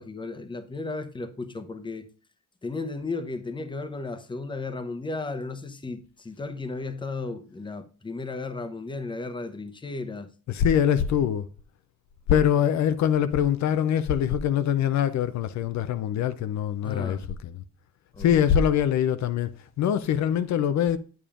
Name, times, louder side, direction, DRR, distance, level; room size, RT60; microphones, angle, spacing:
voice 1, 0.0-2.1 2.6-10.3 16.8-17.3 18.1-18.4, left 3 dB, 15° left, 0.8 m, -34 dB
voice 2, 10.5-11.5 12.3-17.6 18.2-21.0, left 9 dB, 65° left, 0.5 m, -23 dB
8.5 x 7.0 x 2.4 m
cardioid pair, 90°, 30 cm